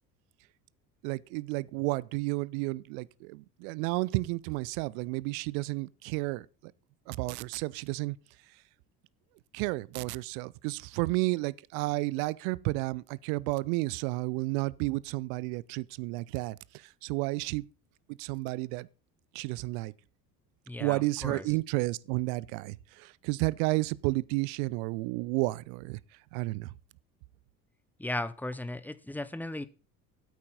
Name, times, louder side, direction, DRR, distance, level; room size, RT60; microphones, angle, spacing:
voice 1, 1.0-6.7 7.1-8.2 9.5-17.6 18.2-18.9 19.3-19.9 20.8-26.0 26.3-26.7, right 22 dB, 55° right, 0.6 m, -32 dB
voice 2, 20.7-21.4 28.0-29.7, left 1 dB, 5° left, 0.8 m, -36 dB
14.0 x 8.5 x 4.2 m
figure-of-eight pair, 60°, 49 cm